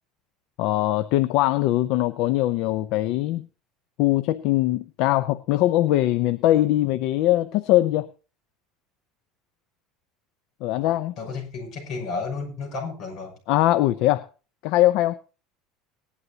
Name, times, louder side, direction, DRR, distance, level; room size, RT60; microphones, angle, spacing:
voice 1, 0.6-3.5 4.0-8.1 10.6-11.1 13.5-14.3 14.6-15.2, left 15 dB, 55° left, 12 dB, 0.6 m, -21 dB
voice 2, 11.2-13.4, left 4 dB, 35° left, 0 dB, 6.2 m, -32 dB
19.0 x 11.0 x 2.8 m, 0.34 s
cardioid pair, 175°, 0 cm